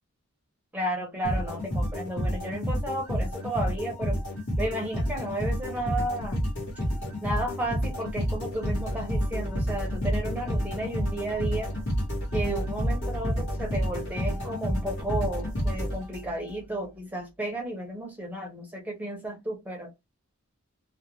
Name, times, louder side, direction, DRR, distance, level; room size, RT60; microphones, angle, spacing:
voice 1, 0.7-4.2 4.6-6.4 7.2-11.8 12.3-19.9, right 1 dB, 5° right, 0.6 m, -33 dB
sound 1, 1.2-16.5, equal, 55° left, 1.1 m, -29 dB
2.4 x 2.1 x 2.9 m
head